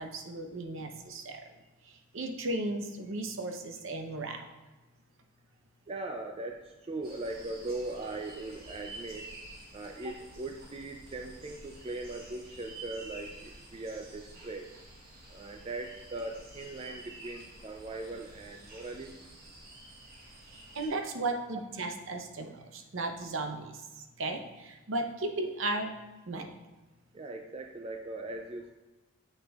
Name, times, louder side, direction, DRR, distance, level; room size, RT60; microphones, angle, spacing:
voice 1, 0.0-1.4 1.8-4.5 20.5-23.8 24.2-25.9 26.3-26.5, right 2 dB, 60° right, 5 dB, 0.7 m, -35 dB
voice 2, 5.9-9.3 9.7-14.7 15.3-19.1 27.1-28.7, right 2 dB, 25° right, 3 dB, 0.4 m, -40 dB
sound 1, 7.0-20.9, right 2 dB, 45° right, 1.3 m, -50 dB
7.5 x 6.1 x 2.4 m, 1.1 s
head